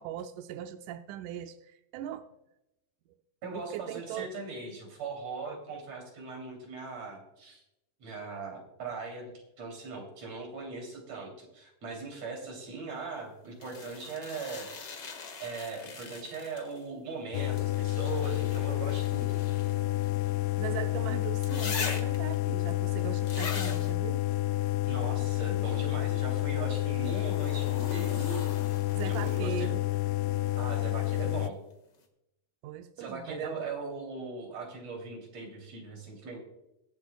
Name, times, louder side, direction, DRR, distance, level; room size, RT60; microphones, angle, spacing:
voice 1, 0.0-2.3 3.6-4.3 20.6-24.3 29.0-29.8 32.6-33.7, right 11 dB, 80° right, 8 dB, 1.9 m, -39 dB
voice 2, 3.4-7.6 8.0-14.7 15.4-19.4 24.9-28.4 29.0-29.7 30.6-31.6 33.0-36.4, right 3 dB, 45° right, 1 dB, 3.9 m, -39 dB
sound 1, 13.6-16.8 17.6-20.8 21.4-22.3 23.3-23.9 26.9-29.6 31.5-31.6, left 3 dB, 40° left, 1.7 m, -41 dB
sound 2, 17.3-31.5, left 17 dB, 85° left, 2.2 m, -30 dB
22.0 x 8.1 x 2.3 m, 0.86 s
omnidirectional pair, 4.1 m